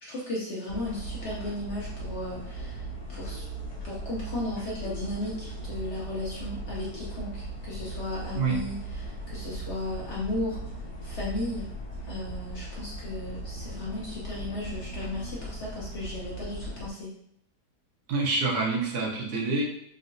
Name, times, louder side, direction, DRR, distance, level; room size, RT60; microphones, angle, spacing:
voice 1, 0.0-3.4 3.8-10.6 11.0-11.7 12.0-17.1, left 2 dB, 60° left, -5 dB, 0.7 m, -35 dB
sound 1, 0.7-16.9, right 1 dB, 45° left, 1.1 m, -38 dB
voice 2, 18.1-19.6, right 4 dB, 75° right, -2 dB, 1.3 m, -27 dB
3.7 x 2.1 x 2.5 m, 0.71 s
omnidirectional pair, 1.7 m